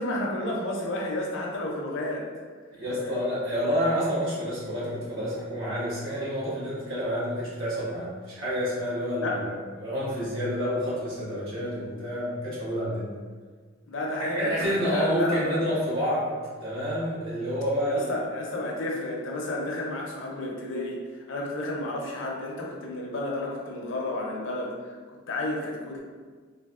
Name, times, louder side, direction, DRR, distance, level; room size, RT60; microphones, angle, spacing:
voice 1, 0.0-2.3 3.0-3.1 9.2-9.4 13.9-15.6 17.9-21.0 21.3-25.0 25.3-26.0, left 1 dB, 65° left, -2 dB, 0.6 m, -31 dB
voice 2, 2.7-9.5 9.8-13.1 14.3-16.3 16.6-18.1, equal, 80° right, -8 dB, 1.3 m, -28 dB
3.3 x 2.3 x 2.4 m, 1.5 s
head